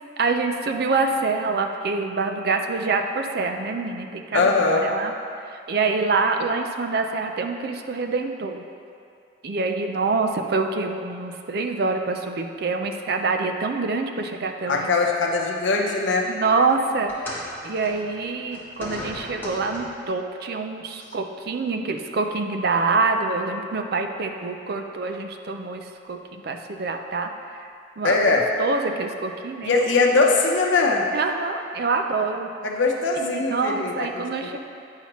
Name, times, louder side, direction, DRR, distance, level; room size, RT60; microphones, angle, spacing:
voice 1, 0.2-5.1 5.5-8.6 9.4-14.9 16.3-27.3 28.0-29.8 31.1-32.5 33.2-34.6, right 4 dB, 50° right, 5 dB, 0.4 m, -26 dB
voice 2, 4.3-4.9 14.7-16.3 28.0-28.5 29.6-31.0 32.6-34.6, left 3 dB, 70° left, 0 dB, 0.8 m, -21 dB
sound 1, 17.1-20.1 21.1-21.3 22.1-22.2, left 1 dB, 10° left, 1.0 m, -37 dB
8.7 x 5.6 x 3.0 m, 2.5 s
head